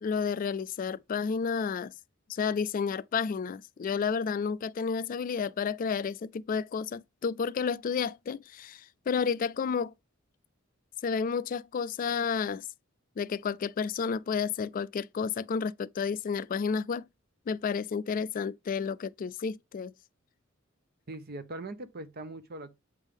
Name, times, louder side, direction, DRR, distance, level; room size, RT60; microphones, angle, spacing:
voice 1, 0.0-1.9 2.3-9.9 11.0-12.6 13.2-17.1 17.5-19.9, left 6 dB, 45° left, 0.3 m, -31 dB
voice 2, 21.1-22.7, right 2 dB, 50° right, 0.8 m, -41 dB
8.1 x 3.6 x 3.4 m
head